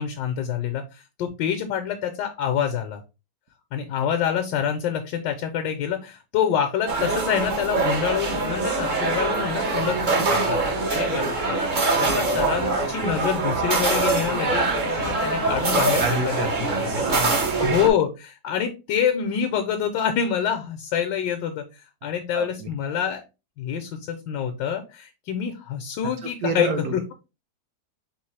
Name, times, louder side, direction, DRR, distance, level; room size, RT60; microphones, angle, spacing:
voice 1, 0.0-3.0 3.7-10.6 10.9-11.6 11.9-17.1 17.6-21.6 22.0-23.2 23.6-27.0, left 8 dB, 80° left, 5 dB, 1.3 m, -26 dB
sound 1, 6.9-17.9, right 3 dB, 50° right, 0.6 m, -24 dB
sound 2, 12.4-17.5, left 2 dB, 55° left, 0.5 m, -40 dB
voice 2, 16.0-17.7 22.3-22.7 26.4-26.9, right 4 dB, 65° right, 5 dB, 1.0 m, -29 dB
4.6 x 3.0 x 3.2 m, 0.28 s
omnidirectional pair, 1.9 m